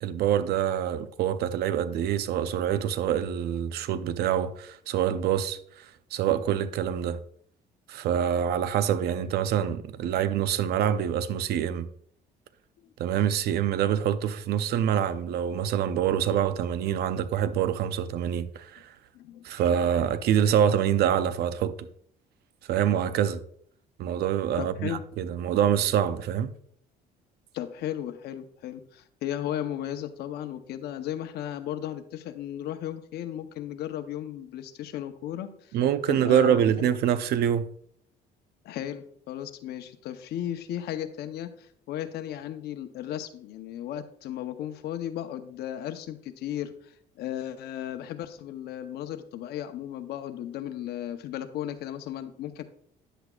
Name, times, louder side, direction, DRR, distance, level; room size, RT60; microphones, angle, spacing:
voice 1, 0.0-7.2 7.9-11.9 13.0-18.9 19.4-21.9 22.7-23.4 24.0-26.5 35.7-37.7, right 9 dB, 70° right, 0.6 m, -26 dB
voice 2, 19.1-19.4 24.6-25.0 27.5-35.8 36.1-36.9 38.6-52.6, left 11 dB, 75° left, 0.8 m, -35 dB
10.0 x 7.9 x 2.4 m
cardioid pair, 110°, 17 cm